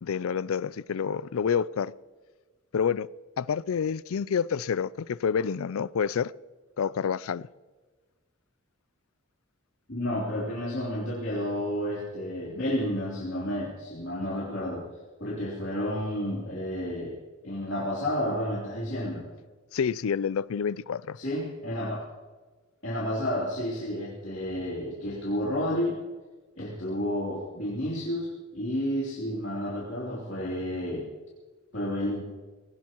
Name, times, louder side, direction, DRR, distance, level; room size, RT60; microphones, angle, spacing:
voice 1, 0.0-1.9 2.7-3.1 3.4-6.3 6.8-7.5 19.7-21.2, left 7 dB, 75° left, 0.4 m, -28 dB
voice 2, 9.9-14.8 15.2-17.2 17.4-19.3 21.1-22.1 22.8-26.0 26.5-31.1 31.7-32.2, equal, 55° left, 3.2 m, -31 dB
20.5 x 18.0 x 3.0 m
head